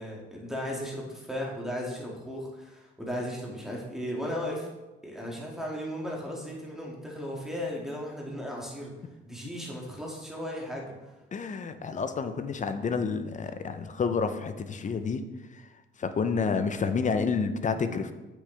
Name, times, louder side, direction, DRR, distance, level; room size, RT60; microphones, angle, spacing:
voice 1, 0.0-4.7 5.0-8.9 9.2-11.1, equal, ahead, -3 dB, 2.1 m, -36 dB
voice 2, 11.3-15.2 15.5-15.6 16.0-18.1, left 5 dB, 40° left, 9 dB, 0.6 m, -29 dB
7.9 x 6.3 x 3.3 m, 1.1 s
cardioid pair, 90°, 20 cm